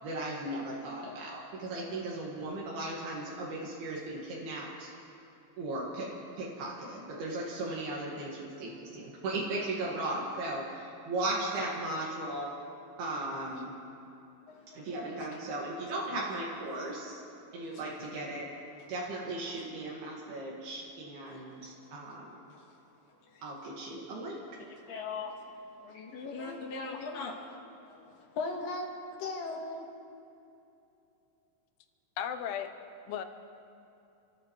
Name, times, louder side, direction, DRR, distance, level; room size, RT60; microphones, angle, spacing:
voice 1, 0.0-4.9 5.6-12.6 13.0-13.7 14.7-17.2 17.5-18.5 18.9-22.3 23.4-24.4, right 2 dB, 80° right, -4 dB, 3.9 m, -37 dB
voice 2, 14.5-15.5 17.6-18.1 18.3-18.5 18.8-18.9 19.6-19.7 21.3-22.2 22.5-22.7 23.2-23.7 24.3-28.9 29.2-29.9, left 3 dB, 70° left, 1 dB, 2.9 m, -41 dB
voice 3, 32.2-32.7 33.1-33.3, left 9 dB, 85° left, 7 dB, 2.8 m, -34 dB
29.5 x 14.5 x 3.2 m, 2.8 s
omnidirectional pair, 4.4 m